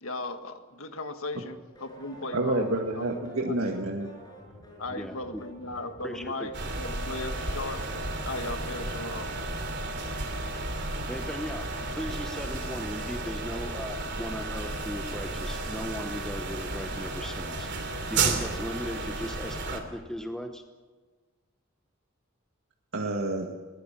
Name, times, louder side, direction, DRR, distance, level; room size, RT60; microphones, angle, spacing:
voice 1, 0.0-3.6 4.8-7.8 8.2-9.3, left 2 dB, 85° left, 7 dB, 1.8 m, -37 dB
sound 1, 1.7-9.7, equal, 20° left, 6.3 m, -50 dB
voice 2, 2.3-4.1 22.9-23.5, right 1 dB, 75° right, 1 dB, 1.8 m, -28 dB
voice 3, 4.9-5.4 6.0-6.5 11.1-17.7 18.1-20.6, equal, 5° left, 5 dB, 0.9 m, -38 dB
sound 2, 6.5-19.8, right 3 dB, 55° right, 3.0 m, -33 dB
21.5 x 19.0 x 7.4 m, 1.4 s
head